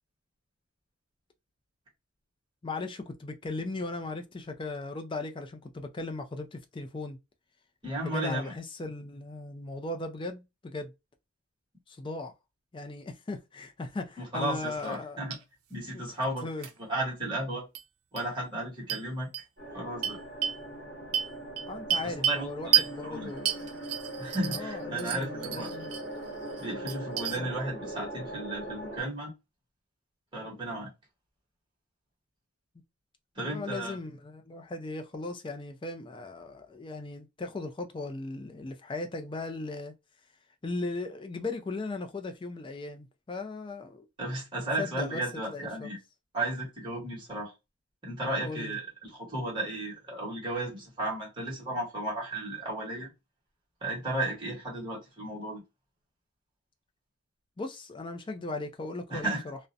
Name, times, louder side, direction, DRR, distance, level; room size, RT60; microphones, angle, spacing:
voice 1, 2.6-7.2 8.0-10.9 11.9-12.3 12.7-15.2 15.9-16.0 16.4-16.7 21.7-23.7 24.5-25.9 27.4-27.5 33.4-39.9 40.6-44.1 44.8-45.2 45.5-45.9 48.4-48.8 57.6-59.6, left 2 dB, 20° left, 0.3 m, -37 dB
voice 2, 7.8-8.5 14.2-15.4 15.7-16.5 16.8-17.7 18.1-19.3 19.7-20.2 22.0-23.3 24.2-25.7 26.6-29.3 30.3-30.9 33.3-34.0 44.2-46.0 46.3-47.5 48.0-53.1 53.8-55.6 59.1-59.4, right 1 dB, 20° right, 1.1 m, -34 dB
sound 1, 14.8-15.0 15.3-15.4 16.6-16.7 17.7-17.8 18.2-18.3 18.9-19.0 19.3-19.4 20.0-20.6 21.1-22.4 22.7-22.9 23.5-24.7 25.0-26.0 26.4-27.4, right 10 dB, 80° right, 0.5 m, -30 dB
sound 2, 19.6-29.0, right 1 dB, 45° right, 1.2 m, -41 dB
2.4 x 2.1 x 2.5 m
head